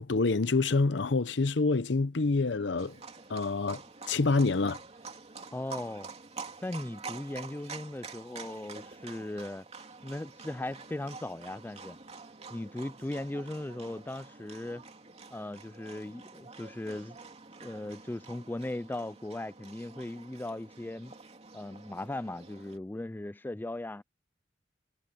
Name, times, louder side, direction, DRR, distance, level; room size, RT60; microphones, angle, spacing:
voice 1, 0.0-3.0 3.3-3.8 4.1-4.8, left 3 dB, 75° left, 0.8 m, -27 dB
Livestock farm animals working animals, 2.8-22.8, right 4 dB, 35° right, 2.8 m, -48 dB
voice 2, 5.5-6.1 6.6-9.7 10.0-12.0 12.5-14.9 15.3-17.2 17.6-21.1 21.5-24.0, left 1 dB, 10° left, 0.3 m, -38 dB
head